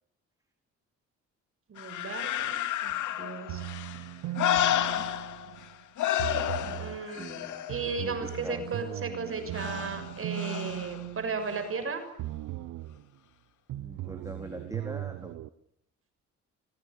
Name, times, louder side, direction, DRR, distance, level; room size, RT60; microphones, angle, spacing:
voice 1, 1.7-3.6 6.8-7.3 7.7-12.0, right 4 dB, 45° right, 8 dB, 6.6 m, -35 dB
sound 1, 1.8-5.7 6.0-8.5 9.5-11.0 11.5-11.6, left 12 dB, 80° left, 2.3 m, -31 dB
sound 2, 3.5-5.7 6.2-7.0 7.7-11.8 12.2-13.0 13.7-15.5, right 16 dB, 85° right, 1.0 m, -38 dB
voice 2, 5.3-5.8 6.5-8.7 13.7-15.3, right 1 dB, 10° right, 5 dB, 3.9 m, -44 dB
26.5 x 25.0 x 6.9 m, 0.72 s
cardioid pair, 90°, 30 cm